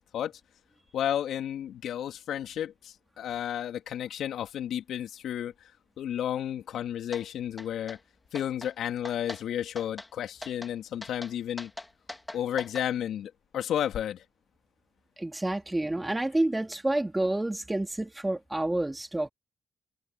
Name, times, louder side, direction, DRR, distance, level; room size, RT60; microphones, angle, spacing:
voice 1, 0.9-5.5 6.0-8.0 8.3-11.7 12.3-14.2, left 10 dB, 80° left, 3.5 m, -32 dB
sound 1, 7.1-7.2 7.6-8.0 8.3-8.7 9.0-9.4 9.8-10.1 10.4-10.7 11.0-12.9, left 2 dB, 20° left, 3.8 m, -41 dB
voice 2, 15.2-19.3, right 1 dB, 15° right, 3.6 m, -29 dB
supercardioid pair, 50°, 0 cm